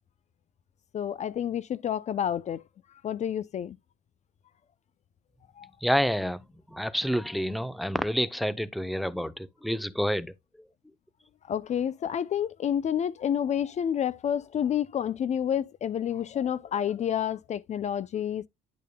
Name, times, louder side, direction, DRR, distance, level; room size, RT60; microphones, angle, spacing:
voice 1, 0.9-2.6 3.0-3.8 5.6-5.7 11.4-18.5, left 9 dB, 45° left, 0.5 m, -29 dB
voice 2, 5.8-6.4 6.7-10.3, equal, ahead, 0.6 m, -28 dB
10.5 x 6.6 x 2.2 m
cardioid pair, 110°, 17 cm